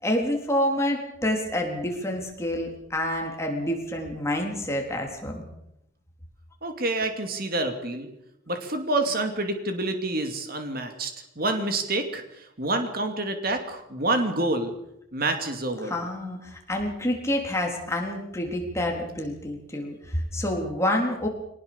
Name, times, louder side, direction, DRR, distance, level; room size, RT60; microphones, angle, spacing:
voice 1, 0.0-5.4 15.8-21.3, left 1 dB, 15° left, 1 dB, 3.8 m, -28 dB
voice 2, 6.6-8.1 8.5-14.7 15.1-15.9, right 2 dB, 45° right, 6 dB, 2.6 m, -28 dB
24.0 x 19.0 x 7.0 m, 0.81 s
head